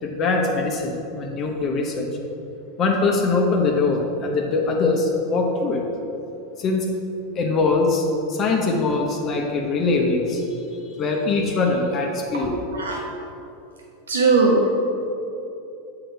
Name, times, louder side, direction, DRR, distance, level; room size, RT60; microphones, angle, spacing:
voice 1, 0.0-2.1 2.8-5.8 6.6-6.8 7.3-10.5 11.0-12.7, left 3 dB, 40° left, 0 dB, 0.8 m, -22 dB
voice 2, 14.1-14.7, right 3 dB, 80° right, -1 dB, 0.6 m, -18 dB
7.7 x 3.9 x 4.6 m, 2.9 s
hypercardioid pair, 90°, 0 cm